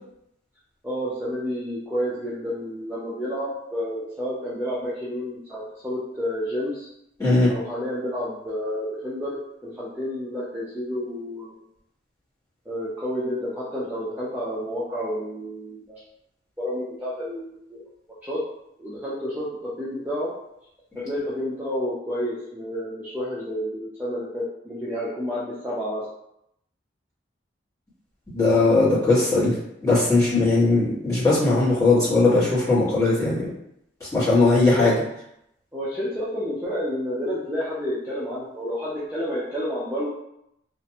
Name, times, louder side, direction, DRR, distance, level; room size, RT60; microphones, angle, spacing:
voice 1, 0.8-6.9 7.5-11.5 12.7-16.0 16.6-17.8 18.2-18.4 18.8-20.3 20.9-26.1 34.6-35.0 35.7-40.1, equal, 10° right, -10 dB, 0.4 m, -30 dB
voice 2, 28.3-29.5 29.8-33.4 34.1-34.9, left 3 dB, 15° left, -12 dB, 1.1 m, -19 dB
2.5 x 2.1 x 2.7 m, 0.79 s
head